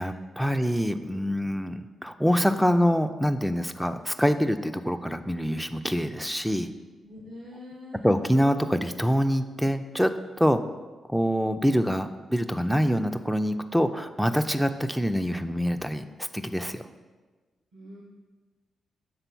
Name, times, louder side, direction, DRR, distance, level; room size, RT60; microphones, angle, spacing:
voice 1, 0.0-6.7 8.0-10.1 10.4-10.6 11.1-16.8, equal, ahead, 8 dB, 0.4 m, -25 dB
voice 2, 7.0-8.3 17.7-18.0, left 1 dB, 75° right, -2 dB, 1.0 m, -45 dB
6.8 x 3.8 x 6.0 m, 1.3 s
cardioid pair, 75°, 0 cm